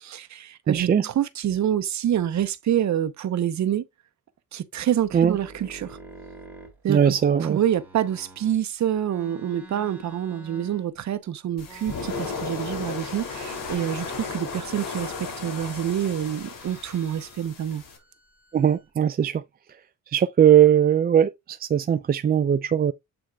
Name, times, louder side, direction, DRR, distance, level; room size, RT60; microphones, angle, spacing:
voice 1, 0.0-3.8 4.5-6.0 6.8-7.1 7.4-17.8, right 10 dB, 60° right, 0.9 m, -27 dB
voice 2, 0.7-1.0 5.1-5.4 6.9-7.6 18.5-19.4 20.1-22.9, right 9 dB, 30° right, 0.4 m, -19 dB
sound 1, 5.0-8.6 9.0-11.2 11.6-12.9 13.2-14.5 14.9-16.0 16.6-17.5 17.7-18.9, right 2 dB, 5° right, 2.8 m, -48 dB
sound 2, 11.6-18.0, left 4 dB, 85° left, 2.9 m, -35 dB
8.0 x 6.1 x 2.3 m
cardioid pair, 140°, 33 cm